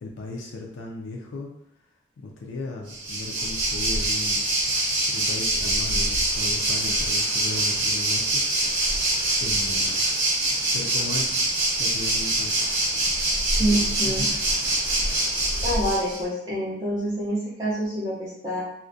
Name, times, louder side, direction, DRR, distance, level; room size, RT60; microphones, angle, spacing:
voice 1, 0.0-1.5 2.5-4.4 5.1-8.4 9.4-10.0 10.7-11.4 11.8-12.5 13.6-13.9, left 3 dB, 85° left, 0 dB, 0.3 m, -36 dB
Waves surf, 2.9-16.2, right 1 dB, 90° right, 0.9 m, -24 dB
voice 2, 13.6-14.3 15.6-18.6, right 1 dB, 20° right, -10 dB, 0.4 m, -27 dB
2.3 x 2.1 x 2.5 m, 0.78 s
head